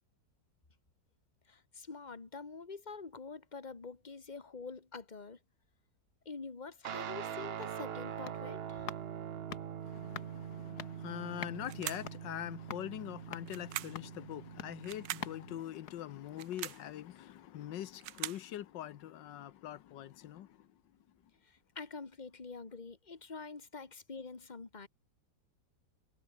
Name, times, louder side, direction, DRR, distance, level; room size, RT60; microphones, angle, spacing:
voice 1, 1.5-5.4 6.3-8.9 21.4-24.9, left 4 dB, 25° left, 2.0 m, -46 dB
Guitar, 6.8-15.6, right 9 dB, 55° right, 0.7 m, -43 dB
sound 1, 7.6-16.8 17.1-17.2, left 9 dB, 65° left, 1.7 m, -50 dB
voice 2, 9.8-20.5, left 12 dB, 85° left, 1.6 m, -43 dB
sound 2, 11.6-12.2 13.5-14.1 14.8-15.3 16.3-16.9 17.7-18.5, right 15 dB, 85° right, 1.4 m, -42 dB
omnidirectional pair, 1.9 m